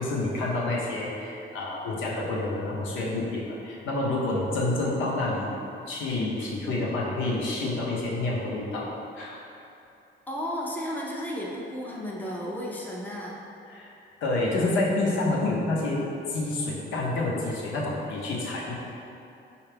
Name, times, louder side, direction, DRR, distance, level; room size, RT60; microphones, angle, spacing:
voice 1, 0.0-5.5 5.9-9.4 13.7-13.9 14.2-16.0 16.3-18.7, left 2 dB, 85° left, -4 dB, 0.7 m, -28 dB
voice 2, 10.3-13.4, equal, 10° left, -4 dB, 0.6 m, -33 dB
4.4 x 2.4 x 3.3 m, 2.8 s
cardioid pair, 90°, 20 cm